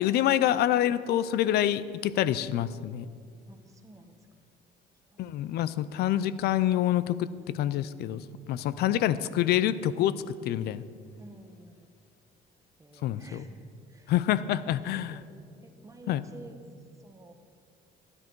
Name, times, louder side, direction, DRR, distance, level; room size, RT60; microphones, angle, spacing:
voice 1, 0.0-3.1 5.2-10.2 10.4-10.8 13.0-13.5 14.1-15.2 16.1-16.2, left 12 dB, 70° left, 16 dB, 0.5 m, -27 dB
voice 2, 3.5-4.2 5.1-5.3 11.2-11.9 12.8-14.1 14.4-14.6 14.9-15.3 15.6-16.6 17.0-17.3, right 2 dB, 20° right, 6 dB, 1.1 m, -51 dB
13.0 x 10.0 x 4.6 m, 2.2 s
cardioid pair, 110°, 17 cm